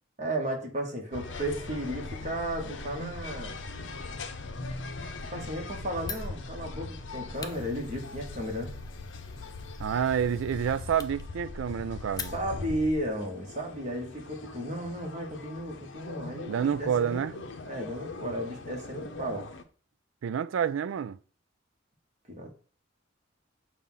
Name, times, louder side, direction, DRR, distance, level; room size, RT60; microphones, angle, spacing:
voice 1, 0.2-3.6 5.3-8.8 12.3-17.2 17.7-19.5 22.3-22.5, right 1 dB, 35° right, 1.4 m, -34 dB
sound 1, 1.1-19.6, left 3 dB, 65° left, 0.7 m, -41 dB
Fire, 6.0-12.8, left 6 dB, 20° left, 0.4 m, -46 dB
voice 2, 9.8-12.3 16.5-17.3 20.2-21.2, right 8 dB, 80° right, 0.3 m, -28 dB
6.8 x 2.5 x 5.6 m
head